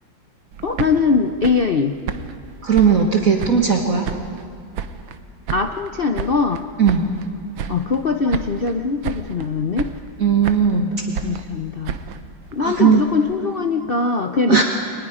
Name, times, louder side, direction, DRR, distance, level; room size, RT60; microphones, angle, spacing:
sound 1, 0.5-3.8 4.0-5.2 5.5-7.3 7.5-8.0 8.3-8.8 9.0-9.5 9.8-10.8 11.1-13.3, right 7 dB, 85° right, 1.7 m, -31 dB
voice 1, 0.6-2.0 5.5-6.6 7.7-9.9 10.7-10.8 11.2-11.9 12.5-14.6, left 4 dB, 50° left, 5 dB, 0.6 m, -21 dB
voice 2, 2.6-4.1 6.8-7.1 10.2-11.1 12.6-13.1 14.5-14.6, right 6 dB, 45° right, 1 dB, 1.8 m, -17 dB
29.5 x 23.0 x 5.0 m, 2.5 s
omnidirectional pair, 2.0 m